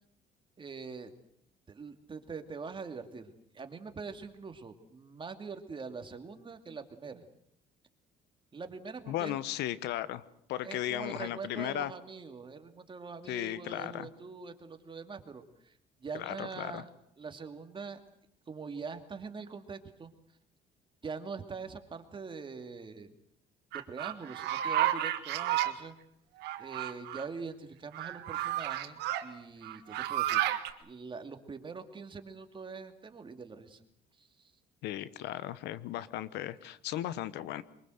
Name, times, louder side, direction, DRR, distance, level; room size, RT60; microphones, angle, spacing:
voice 1, 0.6-1.1 1.7-7.2 8.5-9.4 10.6-16.9 17.2-18.0 18.5-20.1 21.0-23.1 23.7-26.0 26.6-30.4 30.8-33.8 34.2-34.5, right 5 dB, 30° right, 7 dB, 2.6 m, -43 dB
voice 2, 9.1-10.2 10.5-11.9 13.3-14.1 16.1-16.8 34.8-37.6, left 13 dB, 85° left, 16 dB, 1.1 m, -36 dB
sound 1, 23.7-25.7 26.4-27.3 27.9-29.2 29.6-30.7, right 13 dB, 85° right, 1.8 m, -31 dB
23.5 x 22.5 x 8.0 m, 0.72 s
cardioid pair, 110°, 17 cm